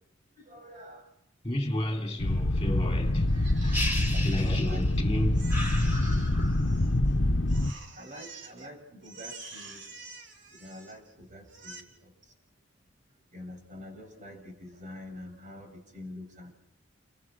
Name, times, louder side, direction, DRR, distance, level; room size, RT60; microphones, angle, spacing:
voice 1, 0.4-1.1 4.1-4.8 7.9-9.9 10.5-12.1 13.3-16.5, left 1 dB, 40° right, 7.5 m, -46 dB
voice 2, 1.4-6.1, left 1 dB, 20° left, 3.5 m, -33 dB
sound 1, 2.2-7.7, left 1 dB, 70° left, 1.3 m, -26 dB
Crying sobbing, 3.3-5.0 5.3-7.1 7.5-8.7 9.0-11.1 11.5-11.8, right 3 dB, 70° right, 3.7 m, -47 dB
sound 2, 3.7-5.1 5.5-6.8, left 1 dB, 10° right, 5.8 m, -36 dB
30.0 x 24.0 x 6.5 m
head